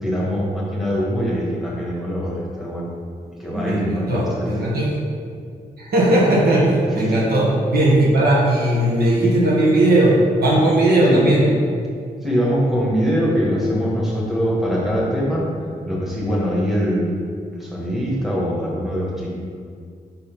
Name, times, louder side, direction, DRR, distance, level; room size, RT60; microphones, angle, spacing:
voice 1, 0.0-2.9 3.4-4.5 11.0-11.3 12.2-15.5 15.8-17.1 17.5-19.3, equal, ahead, -5 dB, 1.4 m, -22 dB
voice 2, 3.5-5.0 5.8-11.5, right 1 dB, 85° right, -4 dB, 1.2 m, -17 dB
4.2 x 4.2 x 5.3 m, 2.2 s
cardioid pair, 90°, 16 cm